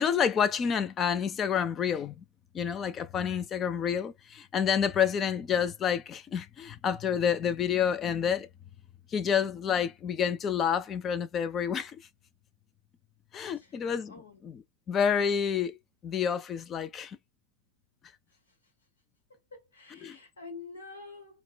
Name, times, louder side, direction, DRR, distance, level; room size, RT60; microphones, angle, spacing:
voice 1, 0.0-2.2 2.5-8.5 9.1-12.0 13.3-15.8 16.0-17.2 20.0-20.2, left 7 dB, 25° left, 0.4 m, -29 dB
voice 2, 14.1-14.4 19.5-21.4, left 4 dB, 70° left, 1.1 m, -46 dB
4.2 x 2.1 x 2.3 m
figure-of-eight pair, 90°, 0 cm